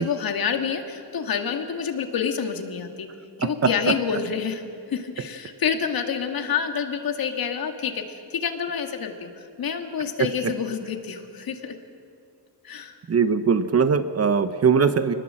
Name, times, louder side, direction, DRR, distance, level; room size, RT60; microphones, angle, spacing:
voice 1, 0.0-3.1 3.4-4.6 4.9-11.7 12.6-13.0, left 7 dB, 55° left, 5 dB, 2.1 m, -28 dB
voice 2, 3.4-3.9 10.4-10.5 13.1-15.1, right 6 dB, 35° right, 10 dB, 0.9 m, -21 dB
25.0 x 20.0 x 7.7 m, 2.4 s
cardioid pair, 135°, 43 cm